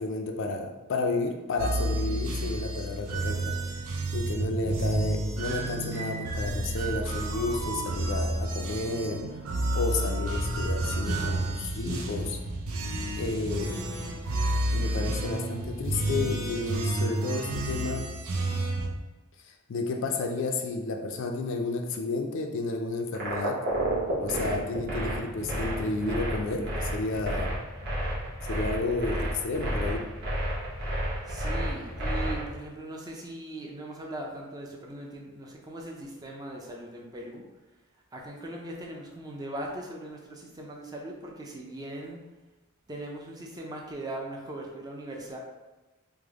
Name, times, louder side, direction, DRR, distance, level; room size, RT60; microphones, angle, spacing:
voice 1, 0.0-3.6 4.1-9.2 9.7-12.4 13.1-13.8 14.7-18.1 19.7-23.6 24.2-27.5 28.5-30.0, left 3 dB, 60° left, 3 dB, 0.3 m, -31 dB
sound 1, 1.6-18.9, right 1 dB, 75° right, 0.5 m, -30 dB
sound 2, 23.1-32.5, right 1 dB, 50° right, 0.9 m, -30 dB
voice 2, 31.3-37.4 38.1-42.2 42.9-45.4, right 1 dB, 15° right, -1 dB, 0.4 m, -39 dB
3.3 x 2.1 x 3.5 m, 1.1 s
head